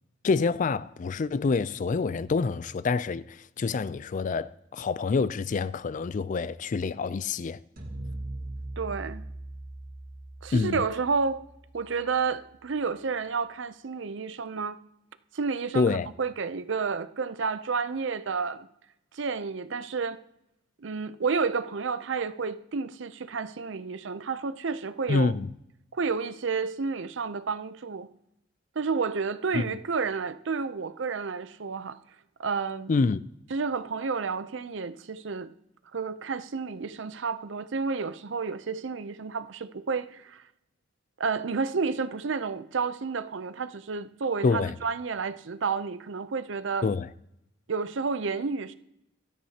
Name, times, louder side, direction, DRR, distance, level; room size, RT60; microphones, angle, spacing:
voice 1, 0.2-7.6 10.5-10.8 15.7-16.1 25.1-25.5 29.5-29.6 32.9-33.2 44.4-44.7 46.8-47.1, left 4 dB, 40° left, 0.4 m, -27 dB
sound 1, 7.8-12.1, right 1 dB, 50° right, 1.8 m, -40 dB
voice 2, 8.8-9.2 10.4-11.5 11.7-14.8 15.3-18.7 19.1-20.2 20.8-25.3 25.9-28.1 28.8-32.0 32.4-32.9 33.5-35.5 35.9-40.4 41.2-46.9 47.7-48.7, right 5 dB, 65° right, 0.6 m, -30 dB
16.0 x 13.0 x 2.9 m
head